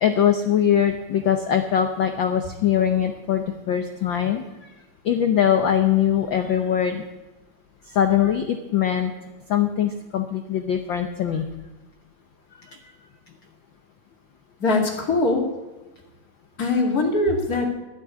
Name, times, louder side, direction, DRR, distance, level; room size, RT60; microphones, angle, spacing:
voice 1, 0.0-4.4 5.0-7.0 7.9-9.1 9.5-11.4, left 9 dB, 90° left, 7 dB, 1.0 m, -22 dB
voice 2, 14.6-15.4 16.6-17.7, left 2 dB, 30° left, 1 dB, 2.6 m, -21 dB
13.0 x 8.5 x 8.1 m, 1.1 s
omnidirectional pair, 3.3 m